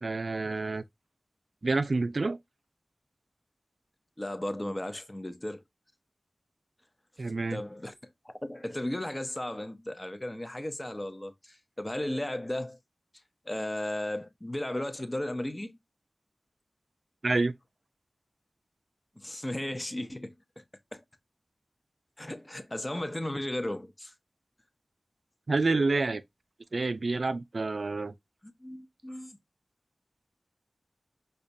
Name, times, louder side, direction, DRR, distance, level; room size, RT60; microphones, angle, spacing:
voice 1, 0.0-0.8 1.6-2.4 7.2-7.6 17.2-17.5 25.5-26.2 26.7-28.1, right 3 dB, 60° right, 0.3 m, -28 dB
voice 2, 4.2-5.6 7.5-7.9 8.2-12.8 13.5-15.8 19.2-20.6 20.9-21.0 22.2-24.1 28.4-29.4, left 1 dB, 20° left, 0.5 m, -35 dB
4.9 x 2.2 x 2.6 m
wide cardioid pair, 70°, 0 cm